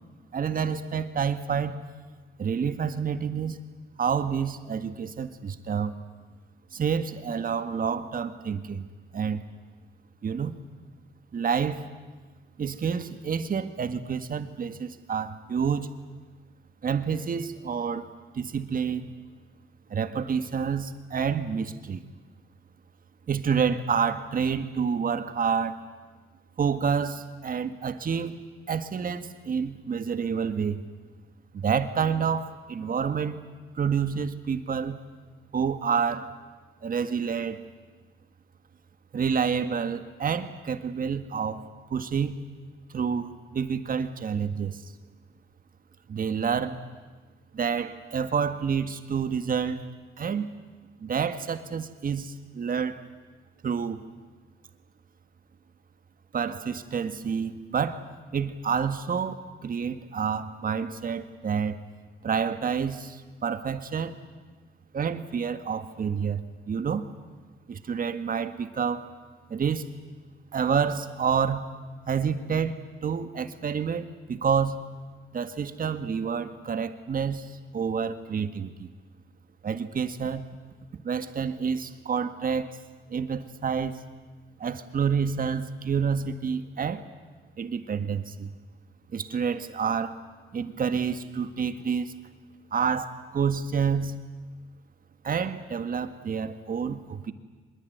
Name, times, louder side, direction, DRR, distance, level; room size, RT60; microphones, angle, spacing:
voice 1, 0.3-1.8 2.4-3.6 4.0-5.9 6.7-8.9 9.1-9.4 10.2-10.5 11.3-11.9 12.6-15.9 16.8-18.1 18.3-19.1 19.9-22.0 23.3-25.8 26.6-28.4 28.7-30.8 31.5-33.4 33.7-35.0 35.5-36.3 36.8-37.6 39.1-41.6 41.9-42.4 42.9-44.9 46.1-46.8 47.5-49.8 50.2-50.5 51.0-53.0 53.6-54.0 56.3-58.0 58.3-61.8 62.2-64.2 64.9-67.1 67.7-69.0 69.5-69.9 70.5-71.7 72.1-74.8 75.3-78.9 79.6-80.5 81.0-82.8 83.1-84.0 84.6-87.1 87.6-88.5 89.1-90.2 90.5-92.1 92.7-94.2 95.2-97.3, right 6 dB, 45° right, 10 dB, 1.8 m, -28 dB
24.0 x 21.5 x 9.5 m, 1.4 s
cardioid pair, 90°, 20 cm